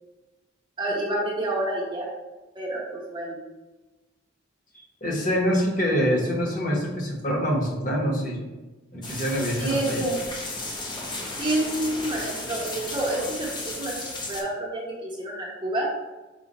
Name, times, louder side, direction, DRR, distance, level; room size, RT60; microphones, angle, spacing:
voice 1, 0.8-2.1 2.5-3.4 9.6-10.2 11.4-15.8, right 1 dB, 25° right, -3 dB, 0.9 m, -28 dB
voice 2, 4.7-8.4 8.9-10.0, equal, 40° left, -3 dB, 1.0 m, -25 dB
sound 1, 9.0-14.4, left 2 dB, 20° left, 0.5 m, -34 dB
4.9 x 2.3 x 4.0 m, 1.1 s
head